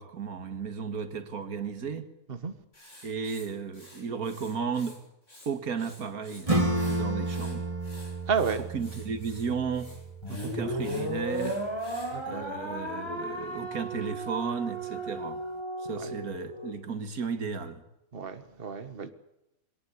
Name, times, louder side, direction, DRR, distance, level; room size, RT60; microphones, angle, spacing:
voice 1, 0.0-2.1 3.0-5.0 5.5-6.5 6.9-7.7 8.7-9.9 10.4-11.6 12.3-15.4 15.8-17.8, right 5 dB, 90° right, 2.2 m, -34 dB
Writing, 2.7-5.0 5.2-6.4 6.7-12.1, left 1 dB, 55° left, 7.3 m, -51 dB
Acoustic guitar / Strum, 6.5-11.7, right 2 dB, 20° right, 3.0 m, -32 dB
voice 2, 8.3-8.6 10.3-10.5 12.1-12.4 15.9-16.1 18.1-19.1, right 6 dB, 40° right, 1.7 m, -32 dB
sound 1, 10.2-16.7, right 1 dB, 20° left, 4.2 m, -35 dB
23.0 x 18.0 x 8.4 m
omnidirectional pair, 1.5 m